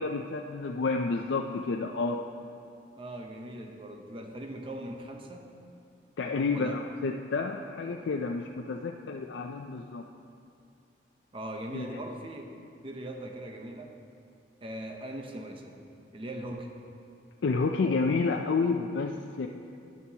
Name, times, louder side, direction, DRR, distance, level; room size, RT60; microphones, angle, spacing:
voice 1, 0.0-2.2 6.2-10.1 11.7-11.9 17.4-19.5, left 4 dB, 80° left, 2 dB, 0.4 m, -30 dB
voice 2, 2.9-5.5 6.5-6.8 11.3-12.5 12.8-14.0 14.6-15.8 16.1-16.7, right 1 dB, 30° right, 2 dB, 0.7 m, -40 dB
12.5 x 10.5 x 2.8 m, 2.5 s
head